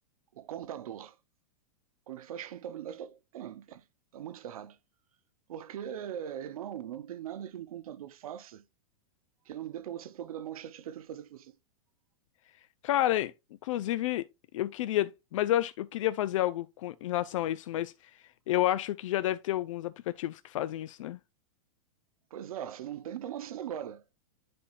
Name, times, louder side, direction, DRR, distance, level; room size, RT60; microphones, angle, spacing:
voice 1, 0.3-1.2 2.1-3.8 4.1-4.8 5.5-8.6 9.5-11.6 22.3-24.0, right 10 dB, 80° right, 0.8 m, -40 dB
voice 2, 12.8-13.3 13.6-14.2 14.5-17.9 18.5-21.2, left 14 dB, 60° left, 0.4 m, -30 dB
11.0 x 4.3 x 2.4 m
supercardioid pair, 155°, 18 cm